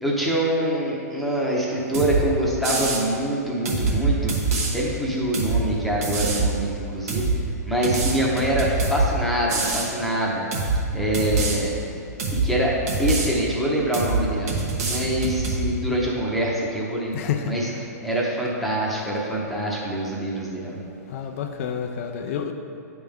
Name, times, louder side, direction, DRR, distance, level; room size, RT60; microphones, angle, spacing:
voice 1, 0.0-4.3 4.7-7.3 7.7-10.5 10.9-11.8 12.3-12.7 13.0-14.5 14.8-17.7 18.0-20.9, right 1 dB, ahead, -5 dB, 0.8 m, -25 dB
sound 1, 1.9-2.2 2.6-3.0 3.7-4.7 5.3-5.6 6.0-6.5 7.1-7.4 7.8-9.1 9.5-9.9 10.5-10.8 11.1-11.6 12.2-12.5 12.9-13.3 13.9-14.2 14.5-15.6, right 3 dB, 60° right, 1.2 m, -24 dB
voice 2, 17.1-17.9 21.1-22.5, left 7 dB, 50° left, 5 dB, 0.4 m, -29 dB
9.5 x 3.5 x 3.5 m, 2.6 s
hypercardioid pair, 135°, 9 cm